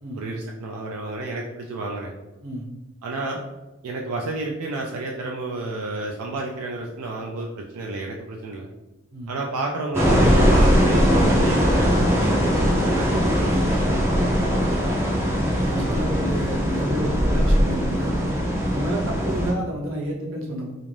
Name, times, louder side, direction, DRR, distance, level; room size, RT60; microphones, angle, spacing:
voice 1, 0.2-2.1 3.0-3.4 3.8-8.7 9.3-14.3, right 2 dB, 90° right, 0 dB, 0.4 m, -31 dB
sound 1, 9.9-19.5, equal, 10° right, 0.4 m, -20 dB
voice 2, 15.2-18.3 18.7-20.8, right 1 dB, 65° right, -2 dB, 0.7 m, -30 dB
2.5 x 2.5 x 3.1 m, 1.1 s
head